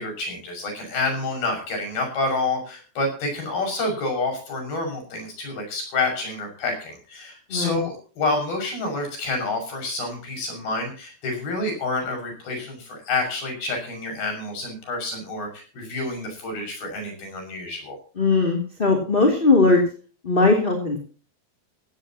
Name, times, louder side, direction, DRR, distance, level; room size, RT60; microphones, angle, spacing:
voice 1, 0.0-18.0, left 2 dB, 70° left, 4 dB, 8.1 m, -28 dB
voice 2, 7.5-7.8 18.2-19.8 20.2-21.0, left 3 dB, 15° left, 1 dB, 2.6 m, -19 dB
17.0 x 17.0 x 3.0 m, 0.37 s
omnidirectional pair, 4.5 m